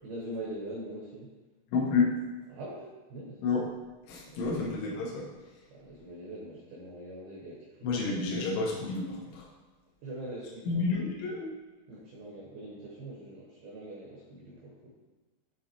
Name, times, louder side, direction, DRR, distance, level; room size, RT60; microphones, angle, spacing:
voice 1, 0.0-1.3 2.5-3.4 4.3-4.6 5.7-8.1 10.0-10.8 11.9-14.9, right 1 dB, 75° right, -4 dB, 2.2 m, -43 dB
voice 2, 1.7-2.2 3.4-3.7 4.1-5.3 7.8-9.5 10.7-11.5, left 4 dB, 75° left, -5 dB, 3.3 m, -30 dB
9.7 x 3.9 x 2.9 m, 1.2 s
omnidirectional pair, 5.7 m